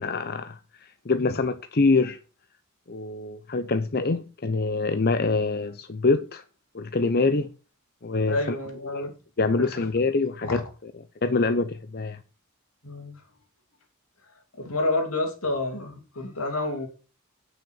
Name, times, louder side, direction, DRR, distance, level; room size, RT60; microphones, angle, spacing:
voice 1, 0.0-2.2 2.9-6.4 6.7-7.5 8.0-8.6 8.9-9.1 9.4-10.6 11.2-12.2, left 3 dB, 45° left, 0.7 m, -25 dB
voice 2, 8.3-9.1 9.5-9.9 10.4-10.6 12.8-13.2 14.5-16.9, left 2 dB, 75° left, 3.0 m, -29 dB
9.2 x 6.4 x 6.5 m
head